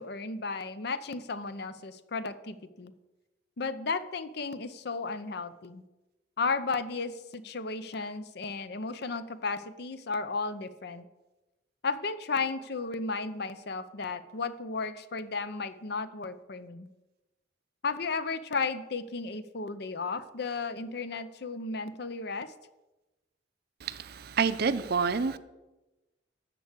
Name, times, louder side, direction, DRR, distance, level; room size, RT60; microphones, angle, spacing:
voice 1, 0.0-2.9 3.6-5.8 6.4-11.1 11.8-16.9 17.8-22.5, left 4 dB, 60° left, 0.7 m, -34 dB
voice 2, 23.8-25.4, right 5 dB, 60° right, 0.6 m, -28 dB
13.0 x 4.7 x 8.3 m
head